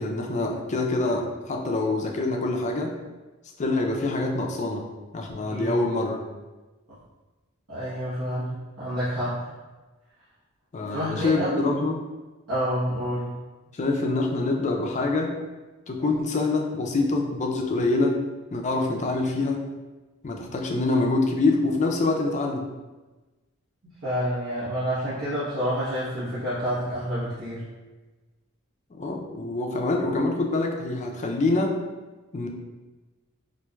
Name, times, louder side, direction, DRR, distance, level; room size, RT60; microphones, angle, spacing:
voice 1, 0.0-2.9 3.6-4.9 5.1-6.2 10.7-12.0 13.7-15.3 15.9-18.2 18.5-19.6 20.2-22.7 28.9-31.7 32.3-32.5, left 2 dB, 35° left, 1 dB, 0.4 m, -25 dB
voice 2, 7.7-9.4 10.9-11.6 12.5-13.3 24.0-27.6, equal, 75° right, -13 dB, 1.2 m, -28 dB
4.3 x 2.5 x 2.3 m, 1.2 s
head